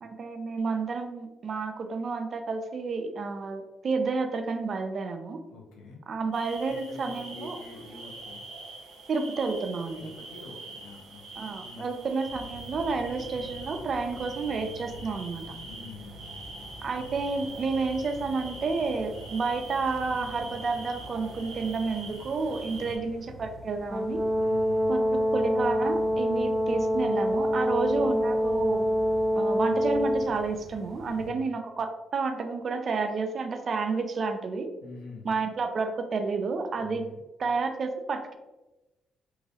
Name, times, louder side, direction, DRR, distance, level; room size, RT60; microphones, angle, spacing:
voice 1, 0.0-5.4 6.1-7.6 9.1-10.1 11.4-15.6 16.8-24.2 24.9-28.9 29.4-34.7 35.2-37.0 37.4-38.4, right 4 dB, 50° right, 6 dB, 0.4 m, -30 dB
voice 2, 5.5-6.0 6.7-8.4 9.9-11.9 15.6-16.2 22.8-23.1 24.4-24.9 31.1-31.5 34.8-35.3 36.7-37.2, left 3 dB, 85° left, 0 dB, 0.8 m, -46 dB
sound 1, 6.3-23.0, right 2 dB, 75° right, 0.8 m, -44 dB
sound 2, 12.3-31.3, left 1 dB, 35° left, 0.4 m, -46 dB
Brass instrument, 23.9-30.3, equal, 5° left, 0.9 m, -25 dB
3.1 x 2.8 x 2.8 m, 1.0 s
cardioid pair, 90°, 0 cm